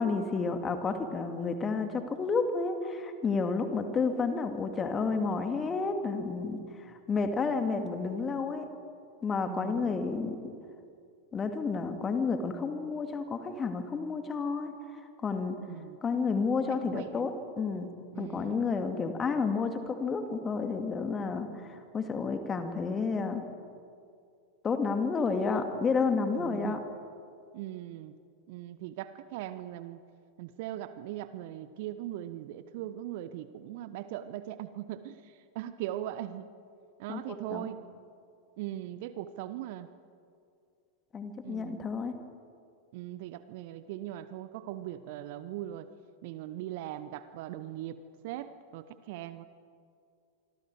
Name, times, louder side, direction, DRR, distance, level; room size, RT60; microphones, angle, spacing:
voice 1, 0.0-8.7 9.2-10.4 11.3-14.7 15.2-15.6 16.0-17.9 18.2-23.4 24.6-26.8 37.1-37.2 37.5-37.7 41.1-42.1, left 4 dB, 20° left, 7 dB, 2.4 m, -31 dB
voice 2, 9.5-10.0 15.6-16.0 16.7-17.2 18.1-18.7 26.3-26.8 27.5-28.1 28.5-30.0 30.4-36.4 37.0-37.8 38.6-39.9 41.4-41.9 42.9-45.9 46.2-49.5, right 13 dB, 50° right, 13 dB, 0.9 m, -40 dB
25.5 x 25.5 x 4.8 m, 2.4 s
figure-of-eight pair, 90°, 0 cm